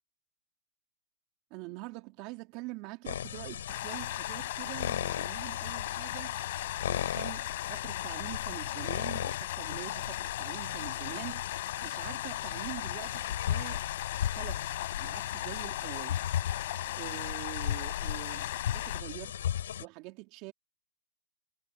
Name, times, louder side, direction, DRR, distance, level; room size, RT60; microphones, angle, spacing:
voice 1, 1.5-6.4 6.8-11.6 11.8-13.8 14.2-16.2 17.0-19.3 19.8-20.5, right 23 dB, 30° right, 3.1 m, -45 dB
sound 1, 3.0-19.8, left 10 dB, 60° left, 7.0 m, -36 dB
sound 2, 3.7-19.0, left 17 dB, 40° left, 7.2 m, -38 dB
hypercardioid pair, 160°, 0 cm